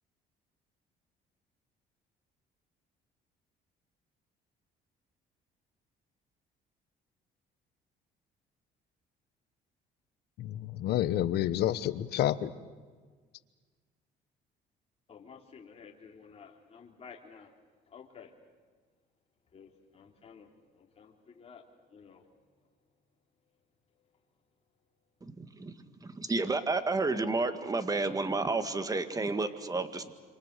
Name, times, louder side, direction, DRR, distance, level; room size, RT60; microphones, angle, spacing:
voice 1, 10.4-12.5, left 12 dB, 75° left, 14 dB, 1.2 m, -29 dB
voice 2, 15.1-17.5 17.9-18.3 19.5-20.5 20.8-21.6 21.9-22.2, left 6 dB, 35° left, 0 dB, 3.4 m, -52 dB
voice 3, 25.2-30.1, right 3 dB, 20° right, 9 dB, 1.9 m, -31 dB
27.5 x 26.0 x 6.7 m, 1.5 s
cardioid pair, 110°, 17 cm